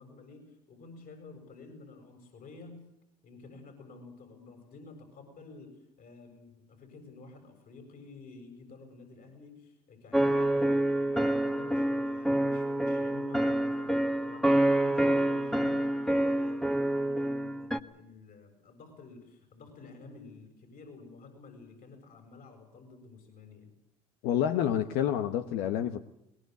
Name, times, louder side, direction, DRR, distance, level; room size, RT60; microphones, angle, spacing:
voice 1, 0.0-2.8 3.2-23.7, left 3 dB, 55° left, 7.9 m, -51 dB
sound 1, 10.1-17.8, right 1 dB, ahead, 1.4 m, -27 dB
voice 2, 24.2-26.0, left 10 dB, 75° left, 1.2 m, -28 dB
22.5 x 20.5 x 8.2 m
hypercardioid pair, 75°, 18 cm